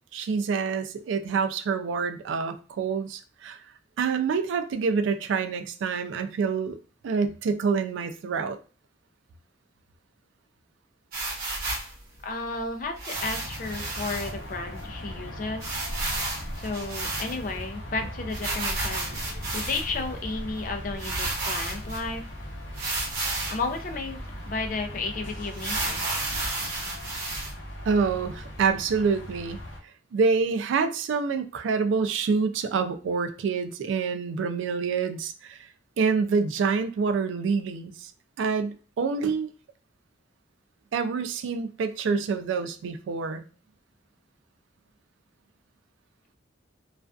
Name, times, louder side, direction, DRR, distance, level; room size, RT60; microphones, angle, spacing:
voice 1, 0.1-3.6 4.0-6.8 7.0-8.6 27.8-29.6 30.1-35.7 36.0-38.1 38.4-39.5 40.9-43.4, right 5 dB, 80° right, 0.3 m, -27 dB
sound 1, 11.1-11.9 13.0-14.3 14.8-14.9 15.1-15.2 15.6-17.6 18.3-20.0 20.6-20.7 21.0-22.0 22.7-23.7 24.2-24.3 24.6-24.8 25.5-27.5, right 2 dB, 50° right, 0.9 m, -32 dB
voice 2, 12.2-15.7 16.6-22.2 23.5-24.2 24.4-26.0, left 3 dB, 45° left, 0.4 m, -33 dB
sound 2, 13.1-29.8, left 1 dB, 80° left, 0.7 m, -39 dB
2.4 x 2.2 x 2.3 m
head